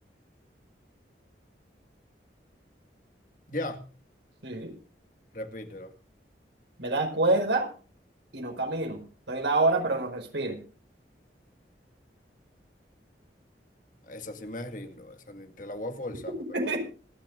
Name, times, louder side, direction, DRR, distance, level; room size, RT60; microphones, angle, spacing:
voice 1, 3.5-3.9 5.3-5.9 14.0-16.7, left 1 dB, 45° left, 6 dB, 2.0 m, -38 dB
voice 2, 6.8-7.7 8.3-9.0 9.3-10.6 16.5-16.8, right 2 dB, 85° right, 4 dB, 5.2 m, -26 dB
26.5 x 12.0 x 2.6 m, 0.37 s
head